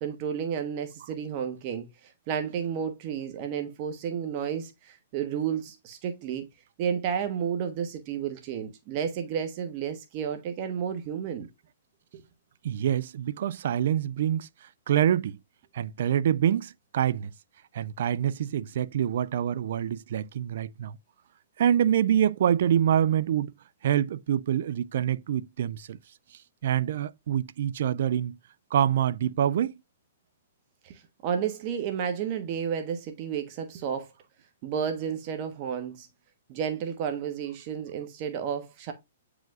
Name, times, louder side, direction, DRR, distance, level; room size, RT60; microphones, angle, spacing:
voice 1, 0.0-6.5 6.8-11.5 12.1-12.2 30.8-34.1 34.6-36.1 36.5-38.9, right 8 dB, 40° right, 1.1 m, -32 dB
voice 2, 12.6-14.5 14.9-15.4 15.7-17.3 17.7-21.0 21.6-23.5 23.8-26.0 26.6-28.4 28.7-29.7, right 10 dB, 60° right, 0.4 m, -26 dB
9.0 x 4.9 x 2.4 m
hypercardioid pair, 130°, 0 cm